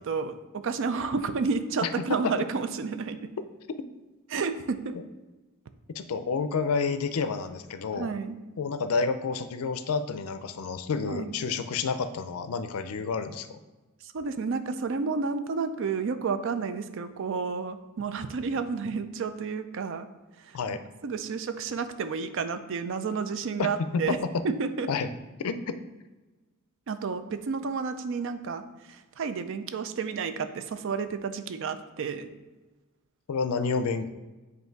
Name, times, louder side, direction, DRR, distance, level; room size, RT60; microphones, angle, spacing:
voice 1, 0.0-3.3 4.3-5.0 8.0-8.4 11.1-11.4 14.0-20.1 21.0-24.2 24.4-24.9 26.9-32.3, right 5 dB, 60° right, 10 dB, 0.4 m, -31 dB
voice 2, 1.8-2.3 5.9-8.1 8.6-13.6 20.5-20.8 23.6-24.2 24.9-25.1 25.4-25.8 33.3-34.1, left 5 dB, 75° left, 11 dB, 0.4 m, -29 dB
7.9 x 2.6 x 4.5 m, 1.2 s
head